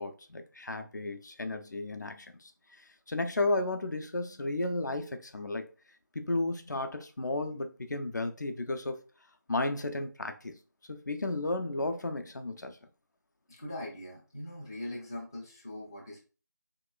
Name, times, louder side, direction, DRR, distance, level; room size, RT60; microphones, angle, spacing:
voice 1, 0.0-2.5 3.1-5.7 6.1-9.0 9.5-10.5 10.9-12.8, left 2 dB, 60° left, 0.6 m, -33 dB
voice 2, 13.5-16.2, left 1 dB, 10° left, 0.4 m, -41 dB
3.9 x 2.9 x 2.3 m
figure-of-eight pair, 170°, 11 cm